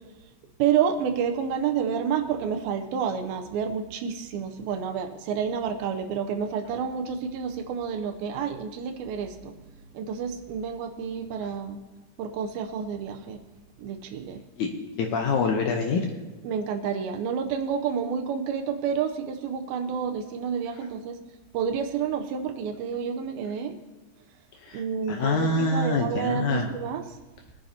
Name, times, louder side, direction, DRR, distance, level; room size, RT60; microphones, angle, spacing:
voice 1, 0.6-9.6 9.9-11.8 12.2-13.4 13.8-14.4 16.4-21.2 21.5-23.8 24.7-27.2, right 7 dB, 75° right, 7 dB, 2.3 m, -29 dB
voice 2, 15.0-16.0 24.6-24.8 25.1-26.7, left 3 dB, 90° left, 2 dB, 1.7 m, -25 dB
22.5 x 10.5 x 2.8 m, 1.1 s
omnidirectional pair, 4.7 m